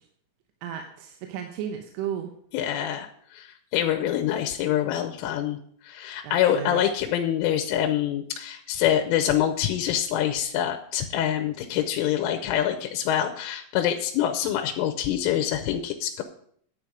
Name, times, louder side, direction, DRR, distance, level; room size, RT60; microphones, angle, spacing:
voice 1, 0.6-2.3 6.2-6.8, right 9 dB, 80° right, 5 dB, 3.3 m, -34 dB
voice 2, 2.5-5.6 5.8-16.2, left 10 dB, 85° left, 5 dB, 3.2 m, -25 dB
10.5 x 8.8 x 5.0 m, 0.63 s
omnidirectional pair, 5.7 m